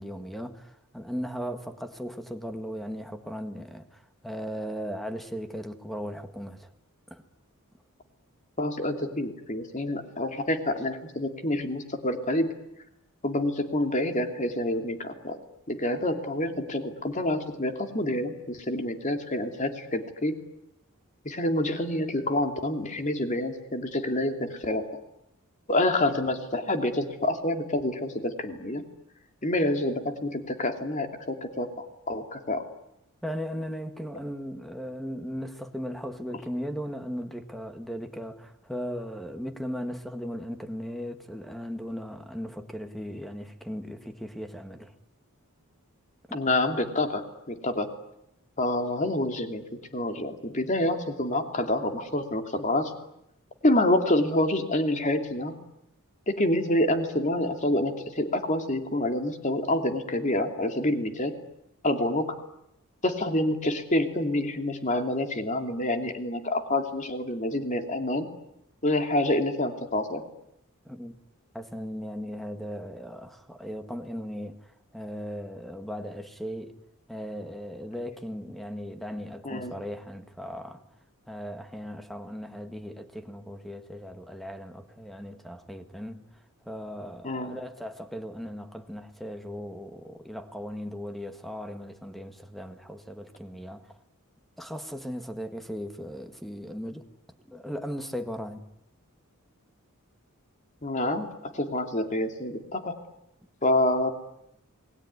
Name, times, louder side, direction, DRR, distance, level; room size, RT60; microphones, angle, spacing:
voice 1, 0.0-6.7 7.1-7.2 33.2-44.9 46.3-46.4 70.8-71.1 71.5-76.7 77.1-80.8 81.3-86.2 86.6-94.0 94.6-97.1 97.5-98.7, equal, ahead, 1.7 m, -37 dB
voice 2, 8.6-12.5 13.2-15.4 15.7-20.3 21.2-24.8 25.7-28.8 29.4-32.6 46.3-47.9 48.6-49.6 49.9-52.9 53.6-55.5 56.3-61.3 61.8-62.3 63.0-68.3 68.8-70.2 79.4-79.8 87.2-87.6 100.8-103.0 103.6-104.1, left 1 dB, 35° left, 2.8 m, -27 dB
28.5 x 21.0 x 9.7 m
head